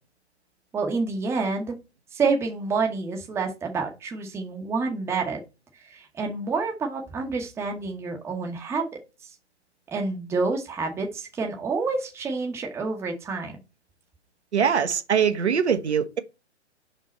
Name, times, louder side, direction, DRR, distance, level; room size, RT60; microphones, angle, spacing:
voice 1, 0.7-1.8 2.1-5.4 5.9-8.8 9.9-13.6, right 4 dB, 5° right, 0.9 m, -28 dB
voice 2, 14.5-16.2, right 7 dB, 70° right, 1.2 m, -22 dB
5.4 x 5.1 x 4.1 m
figure-of-eight pair, 130°, 35 cm